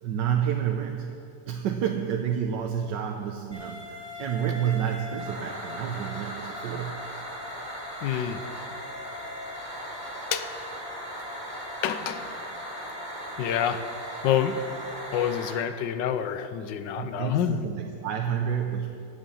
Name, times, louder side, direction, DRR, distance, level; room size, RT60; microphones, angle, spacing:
voice 1, 0.0-1.2 1.5-7.0 17.0-18.9, right 8 dB, 90° right, 3 dB, 1.4 m, -29 dB
sound 1, 3.5-15.5, equal, 5° right, 4.0 m, -38 dB
voice 2, 8.0-8.4 10.3-10.5 11.8-12.3 13.4-13.8 14.2-14.7 15.1-17.6, left 9 dB, 90° left, 11 dB, 1.4 m, -27 dB
14.5 x 9.1 x 7.0 m, 2.7 s
omnidirectional pair, 1.9 m